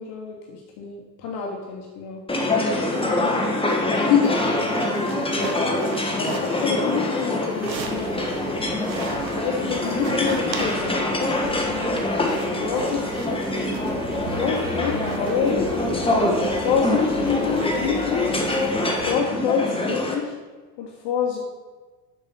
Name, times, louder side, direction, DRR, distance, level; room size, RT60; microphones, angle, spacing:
voice 1, 0.0-2.2 3.9-4.3 5.3-5.5 6.2-8.6 9.3-11.3 12.6-13.0 13.3-13.5 14.4-15.7 16.6-18.4 19.1-20.3 20.8-21.4, left 7 dB, 55° left, 0 dB, 1.4 m, -26 dB
sound 1, 2.3-20.1, left 2 dB, 10° left, 1.5 m, -25 dB
sound 2, 4.2-8.4 8.8-11.1 11.8-18.9, right 5 dB, 85° right, 1.0 m, -37 dB
sound 3, 7.6-19.1, right 2 dB, 50° right, 2.2 m, -38 dB
6.8 x 6.1 x 5.8 m, 1.3 s
figure-of-eight pair, 65°, 50 cm